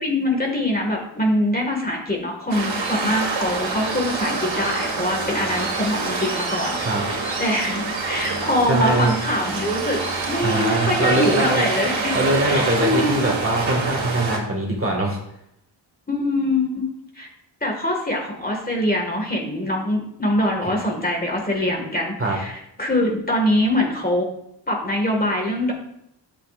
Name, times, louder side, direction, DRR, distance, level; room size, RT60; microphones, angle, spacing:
voice 1, 0.0-10.0 10.3-12.2 12.5-13.3 16.1-16.8 17.2-17.3 17.6-24.3 24.7-25.7, left 1 dB, 20° left, 0 dB, 1.9 m, -23 dB
Waves surf, 2.5-14.4, right 3 dB, 80° right, 1.9 m, -26 dB
voice 2, 8.7-9.1 10.4-11.6 12.1-15.2 22.2-22.4, right 1 dB, 30° right, 0 dB, 1.9 m, -22 dB
10.0 x 8.5 x 2.5 m, 0.77 s
wide cardioid pair, 105°, 45 cm